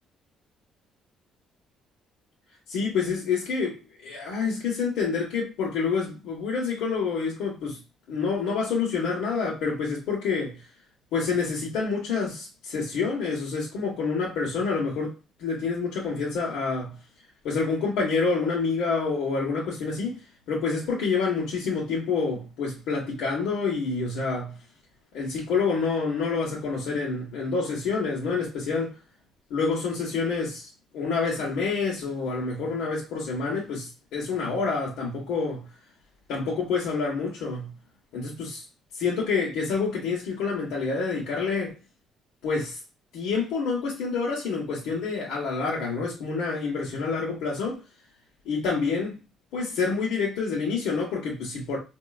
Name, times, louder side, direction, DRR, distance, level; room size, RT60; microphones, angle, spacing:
voice 1, 2.7-7.8 8.1-10.6 11.1-15.1 15.4-17.0 17.4-20.2 20.5-24.6 25.1-28.9 29.5-35.6 36.3-37.7 38.1-38.6 39.0-41.7 42.4-42.8 43.1-47.8 48.4-49.2 49.5-51.8, left 4 dB, 85° left, 1.3 m, -28 dB
4.5 x 2.8 x 2.4 m
cardioid pair, 175°, 0 cm